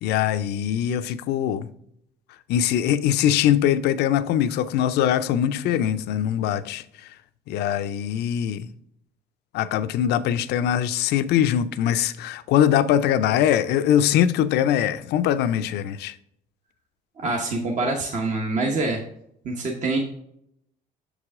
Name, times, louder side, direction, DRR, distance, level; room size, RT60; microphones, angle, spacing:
voice 1, 0.0-1.7 2.5-6.8 7.5-8.7 9.5-16.1, left 10 dB, 80° left, 0.5 m, -22 dB
voice 2, 17.2-19.0 19.4-20.0, right 3 dB, 45° right, 1.0 m, -25 dB
6.6 x 4.9 x 3.6 m
cardioid pair, 110°, 17 cm